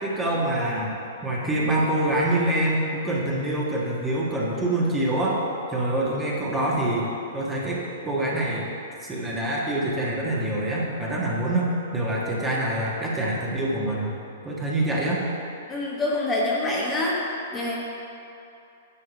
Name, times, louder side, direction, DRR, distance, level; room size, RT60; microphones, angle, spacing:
voice 1, 0.0-1.0 1.2-5.4 5.7-7.1 7.3-8.7 9.0-14.1 14.4-15.2, right 1 dB, 15° right, -5 dB, 1.5 m, -25 dB
voice 2, 15.7-17.2 17.5-17.8, left 2 dB, 15° left, -5 dB, 1.2 m, -25 dB
9.9 x 3.5 x 6.1 m, 2.7 s
figure-of-eight pair, 110°, 0 cm